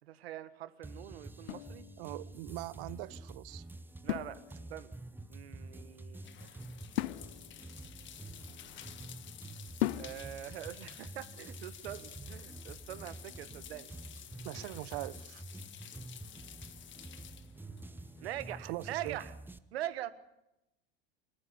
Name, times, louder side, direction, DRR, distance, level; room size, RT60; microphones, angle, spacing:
voice 1, 0.0-1.8 4.0-4.4 4.7-4.9 5.3-6.5 8.5-9.1 10.0-13.9 14.2-14.5 17.6-17.9 18.2-19.3 19.7-20.1, right 13 dB, 85° right, 1.7 m, -43 dB
sound 1, 0.8-19.6, right 2 dB, 5° right, 1.0 m, -48 dB
sound 2, 1.5-2.4 4.1-5.0 7.0-9.0 9.8-10.5, left 17 dB, 75° left, 0.7 m, -38 dB
voice 2, 2.0-3.6 14.4-15.4 18.6-19.2, right 19 dB, 65° right, 1.0 m, -42 dB
sound 3, 5.4-18.6, left 11 dB, 40° left, 1.6 m, -52 dB
29.5 x 10.0 x 10.0 m
hypercardioid pair, 100°, 31 cm